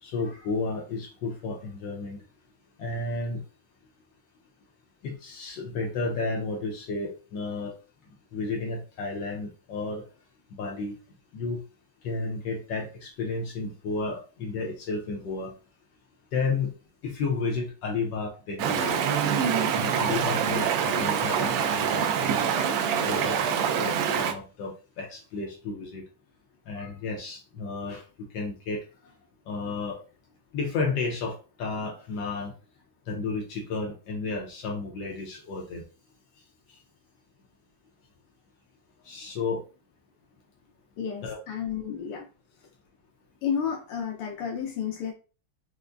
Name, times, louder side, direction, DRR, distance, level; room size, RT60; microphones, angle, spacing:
voice 1, 0.0-2.3 2.8-3.4 5.0-7.8 8.3-10.1 10.6-11.0 11.3-11.6 12.0-15.5 16.3-16.8 17.0-19.0 19.7-22.5 23.0-26.1 26.7-29.2 29.5-30.0 30.5-32.5 33.1-35.8 36.4-36.8 39.0-39.7 41.2-41.4, left 3 dB, 70° left, 1.2 m, -32 dB
Stream, 18.6-24.3, right 7 dB, 75° right, 1.3 m, -25 dB
voice 2, 41.0-42.3 42.6-42.7 43.4-45.1, left 7 dB, 85° left, 1.6 m, -31 dB
4.6 x 2.1 x 2.5 m
omnidirectional pair, 2.4 m